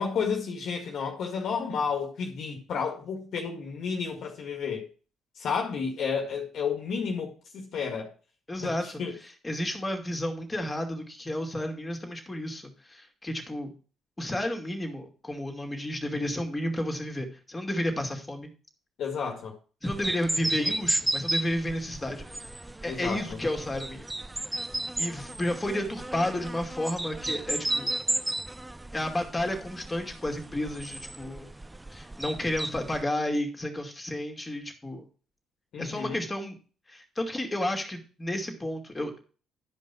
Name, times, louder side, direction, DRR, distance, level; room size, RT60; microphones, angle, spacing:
voice 1, 0.0-4.9 5.4-8.1 8.6-8.7 9.0-9.1 19.0-19.5 20.6-20.7 22.9-23.4 35.7-36.2, left 6 dB, 60° left, 2.0 m, -31 dB
voice 2, 8.5-13.7 14.2-18.5 19.8-22.3 22.8-24.1 24.5-24.7 25.0-28.0 28.9-31.5 31.9-35.0 35.8-36.6 36.9-39.2, left 1 dB, 20° left, 2.6 m, -32 dB
sound 1, 19.8-33.0, right 1 dB, 15° right, 0.5 m, -34 dB
11.5 x 5.4 x 6.0 m
hypercardioid pair, 45°, 0 cm